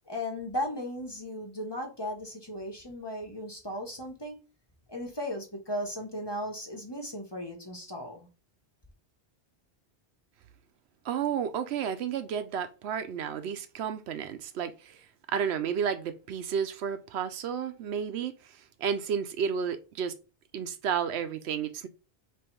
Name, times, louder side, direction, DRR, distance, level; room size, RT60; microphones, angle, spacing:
voice 1, 0.1-4.4 4.9-8.3, left 1 dB, 25° left, 0.9 m, -36 dB
voice 2, 11.0-15.0 15.3-20.1 20.5-21.9, right 7 dB, 80° right, 0.9 m, -32 dB
3.4 x 3.0 x 4.4 m
omnidirectional pair, 1.1 m